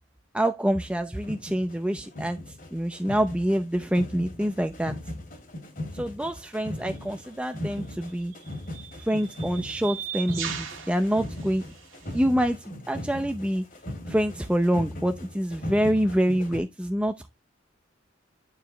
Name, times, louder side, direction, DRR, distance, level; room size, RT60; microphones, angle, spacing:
voice 1, 0.3-4.9 5.9-8.3 9.0-11.6 12.1-13.6 14.1-17.3, equal, 5° right, 0.6 m, -26 dB
sound 1, 0.8-0.9 1.2-16.6, left 1 dB, 45° left, 3.0 m, -39 dB
sound 2, 6.9-7.0 8.0-12.2, right 9 dB, 85° right, 2.0 m, -39 dB
9.2 x 4.8 x 3.3 m
head